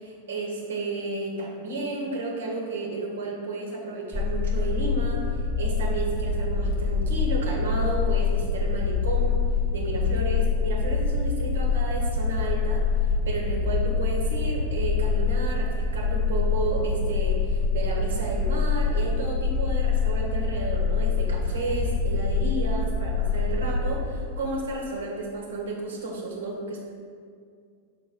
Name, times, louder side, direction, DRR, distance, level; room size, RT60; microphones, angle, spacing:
voice 1, 0.0-9.4 9.7-26.8, right 2 dB, 65° right, -1 dB, 1.3 m, -32 dB
sound 1, 4.1-24.0, left 4 dB, 5° left, 0.9 m, -25 dB
5.5 x 3.9 x 5.1 m, 2.2 s
figure-of-eight pair, 90°, 0 cm